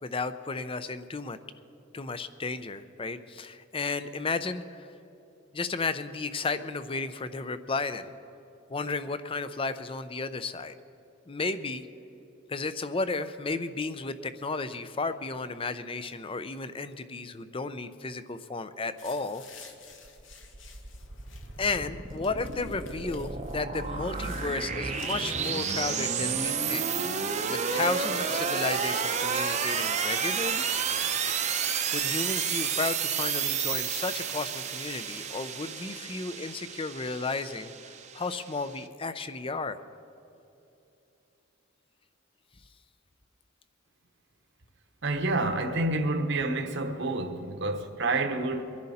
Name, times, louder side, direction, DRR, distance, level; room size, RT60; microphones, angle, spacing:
voice 1, 0.0-1.4 1.9-4.9 5.5-8.1 8.7-10.7 11.3-11.9 12.5-19.4 21.6-26.9 27.5-30.7 31.9-39.8, left 3 dB, 25° left, 0.6 m, -33 dB
sound 1, 19.0-26.1, left 5 dB, 65° left, 1.4 m, -50 dB
sound 2, 20.1-38.8, right 6 dB, 35° right, 0.7 m, -31 dB
voice 2, 45.0-48.6, right 2 dB, 60° right, 1.1 m, -28 dB
24.0 x 10.5 x 4.2 m
head